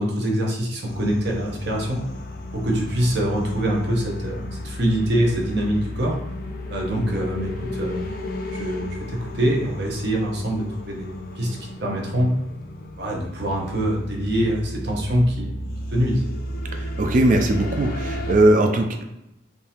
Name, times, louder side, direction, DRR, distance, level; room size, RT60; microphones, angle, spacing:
voice 1, 0.0-2.0 2.5-6.2 6.7-8.1 8.5-12.3 13.0-15.5 15.9-16.2, equal, 55° right, -1 dB, 0.8 m, -24 dB
sound 1, 0.8-18.4, equal, 50° left, 0.4 m, -33 dB
voice 2, 17.0-19.0, right 1 dB, 40° right, 5 dB, 0.3 m, -19 dB
3.7 x 2.7 x 2.8 m, 0.89 s
head